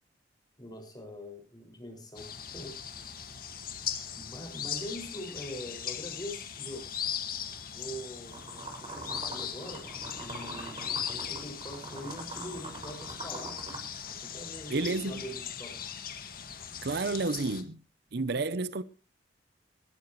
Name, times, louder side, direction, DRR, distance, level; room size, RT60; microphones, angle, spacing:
voice 1, 0.6-3.2 4.1-6.9 7.7-8.4 8.8-9.8 10.2-13.6 14.1-14.8 15.0-15.8, equal, 25° left, 6.1 m, -43 dB
sound 1, 2.2-17.6, left 8 dB, 55° left, 1.9 m, -39 dB
sound 2, 8.3-14.1, right 2 dB, 30° right, 5.7 m, -43 dB
voice 2, 14.7-15.2 16.8-17.8 18.1-18.8, right 3 dB, 60° right, 0.7 m, -30 dB
20.0 x 13.0 x 3.2 m
head